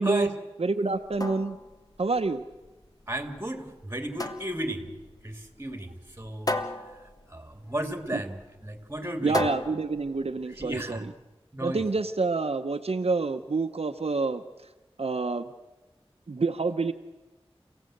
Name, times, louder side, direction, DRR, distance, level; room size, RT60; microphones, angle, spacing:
voice 1, 0.0-1.6 2.0-2.4 8.1-8.2 9.2-11.1 11.6-14.4 15.0-15.5 16.3-16.9, right 3 dB, 75° right, 6 dB, 0.8 m, -27 dB
sound 1, 0.9-10.9, left 1 dB, 35° left, 1.5 m, -36 dB
voice 2, 3.1-4.9 5.2-6.5 7.3-9.4 10.6-11.1 11.5-11.8, right 1 dB, 25° right, 6 dB, 2.9 m, -34 dB
28.5 x 17.0 x 8.0 m, 1.1 s
wide cardioid pair, 55°, 10 cm